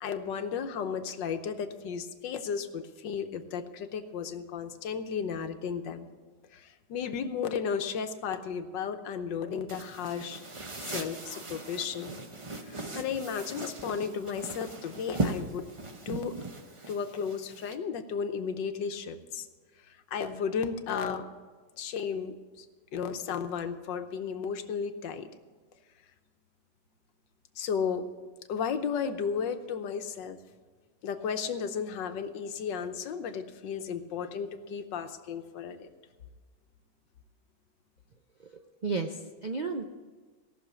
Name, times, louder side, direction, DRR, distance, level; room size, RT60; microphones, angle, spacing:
voice 1, 0.0-6.1 6.5-10.4 10.8-12.1 12.6-15.7 16.1-16.3 16.9-19.5 19.8-21.2 21.8-22.7 22.9-25.3 27.6-28.1 28.5-30.4 31.0-35.9, left 6 dB, 85° left, 8 dB, 1.6 m, -34 dB
sound 1, 9.7-17.7, right 2 dB, 30° right, 0.6 m, -38 dB
voice 2, 38.8-39.8, right 4 dB, 80° right, 4 dB, 0.4 m, -32 dB
17.0 x 6.5 x 8.2 m, 1.4 s
omnidirectional pair, 1.9 m